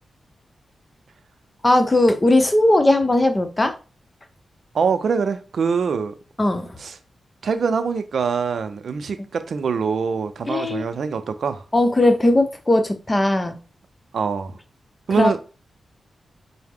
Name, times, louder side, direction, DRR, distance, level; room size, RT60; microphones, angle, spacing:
voice 1, 1.6-3.7 6.4-6.7 10.5-10.8 11.7-13.6 15.1-15.4, left 1 dB, 25° left, 0.8 m, -18 dB
voice 2, 4.7-6.2 6.8-7.0 7.4-11.6 14.1-14.6 15.1-15.4, right 5 dB, 70° right, 0.4 m, -24 dB
5.5 x 2.1 x 3.5 m
cardioid pair, 55°, 0 cm